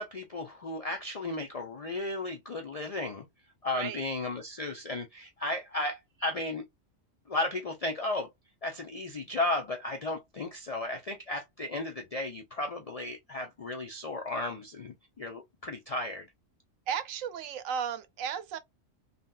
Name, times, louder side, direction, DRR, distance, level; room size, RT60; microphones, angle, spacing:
voice 1, 0.0-3.2 3.6-6.6 7.3-8.3 8.6-16.3, left 2 dB, 60° left, 0.3 m, -34 dB
voice 2, 16.9-18.6, right 7 dB, 85° right, 1.0 m, -34 dB
3.2 x 2.8 x 2.3 m
omnidirectional pair, 1.3 m